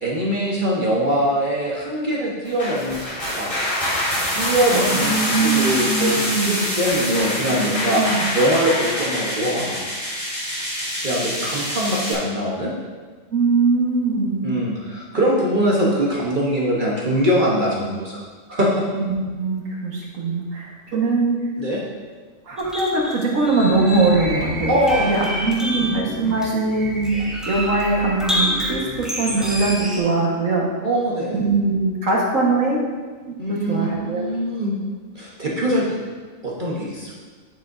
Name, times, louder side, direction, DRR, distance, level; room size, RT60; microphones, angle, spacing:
voice 1, 0.0-3.5 4.3-8.0 8.3-9.9 11.0-12.7 14.4-18.2 18.5-18.7 21.6-21.8 24.7-25.3 25.7-25.8 30.8-31.4 33.4-34.8 35.1-36.0 36.4-37.2, equal, 40° right, -4 dB, 1.2 m, -22 dB
sound 1, 2.4-12.1, equal, 25° left, 2.8 m, -25 dB
voice 2, 4.7-6.6 7.9-8.2 13.3-14.5 18.9-21.3 22.5-24.7 25.0-27.1 27.5-30.7 31.3-32.8 33.5-34.2, right 3 dB, 85° right, -3 dB, 1.8 m, -21 dB
sound 2, 22.6-30.0, equal, ahead, 1.1 m, -28 dB
9.6 x 7.6 x 2.6 m, 1.4 s
omnidirectional pair, 1.3 m